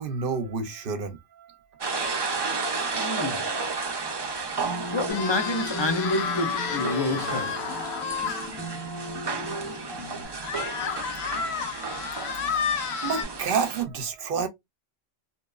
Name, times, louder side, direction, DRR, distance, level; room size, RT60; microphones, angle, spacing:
voice 1, 0.0-2.2 13.0-14.5, right 5 dB, 60° right, 0.7 m, -30 dB
sound 1, 1.8-13.8, right 4 dB, 40° right, 0.4 m, -33 dB
voice 2, 2.9-3.5 4.9-7.9, left 2 dB, 45° left, 0.3 m, -28 dB
sound 2, 4.6-10.2, equal, ahead, 0.8 m, -37 dB
sound 3, 5.1-8.5 9.0-9.1 9.4-9.5 10.4-13.2, left 7 dB, 85° left, 0.9 m, -31 dB
2.8 x 2.1 x 2.2 m
omnidirectional pair, 1.1 m